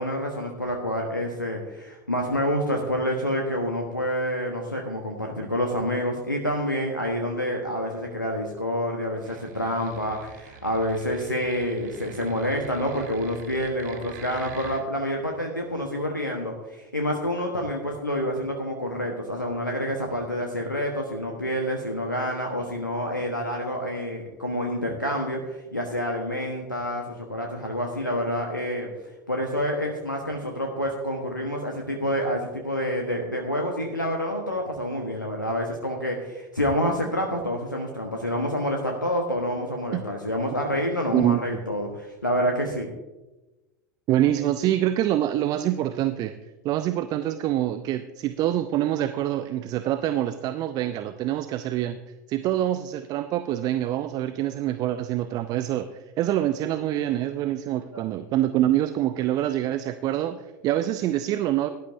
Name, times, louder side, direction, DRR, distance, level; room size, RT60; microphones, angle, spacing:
voice 1, 0.0-28.9 29.3-42.9, equal, 90° left, 2 dB, 1.2 m, -28 dB
sound 1, 9.2-14.8, right 5 dB, 60° right, 1.5 m, -45 dB
voice 2, 41.1-41.4 44.1-46.3 46.6-52.0 52.3-61.7, right 13 dB, 40° right, 11 dB, 0.6 m, -25 dB
17.0 x 12.0 x 2.7 m, 1.1 s
figure-of-eight pair, 80°, 10 cm